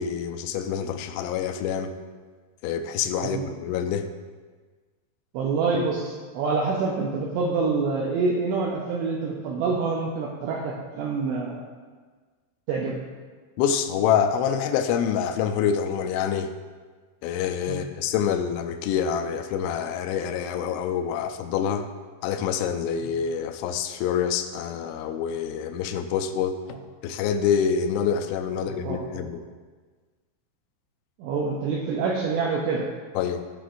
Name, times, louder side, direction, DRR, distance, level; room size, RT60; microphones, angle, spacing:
voice 1, 0.0-1.9 2.6-4.1 13.6-16.5 17.2-21.9 22.2-26.8 27.0-29.4 33.2-33.5, left 8 dB, 80° left, 7 dB, 2.8 m, -26 dB
voice 2, 5.3-11.6 12.7-12.9 17.7-17.8 28.7-29.0 31.2-32.9, right 4 dB, 80° right, -2 dB, 2.6 m, -26 dB
17.0 x 6.1 x 2.6 m, 1.4 s
omnidirectional pair, 5.6 m